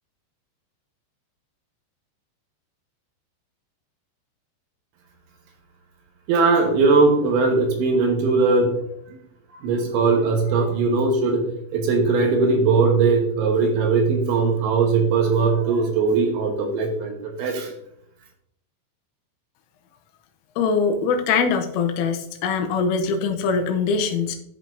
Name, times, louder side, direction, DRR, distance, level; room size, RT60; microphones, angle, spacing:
voice 1, 6.3-8.7 9.6-11.4 11.7-17.7, right 4 dB, 75° right, 2 dB, 3.3 m, -20 dB
voice 2, 20.6-24.4, left 5 dB, 80° left, 5 dB, 3.3 m, -22 dB
14.0 x 5.3 x 2.6 m, 0.75 s
omnidirectional pair, 5.9 m